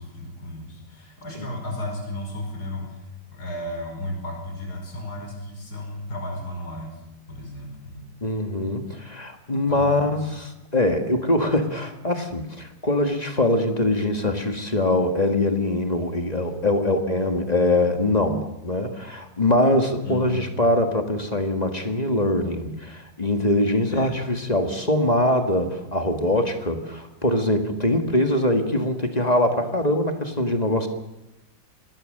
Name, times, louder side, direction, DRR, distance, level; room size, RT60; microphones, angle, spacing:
voice 1, 0.0-3.1 3.3-7.0 7.3-8.0 9.7-10.3 20.0-20.4 23.9-24.3, left 1 dB, 55° left, 1 dB, 5.6 m, -34 dB
voice 2, 8.2-10.5 10.7-30.9, left 1 dB, 20° left, 6 dB, 1.8 m, -23 dB
25.5 x 19.5 x 6.7 m, 0.93 s
omnidirectional pair, 2.0 m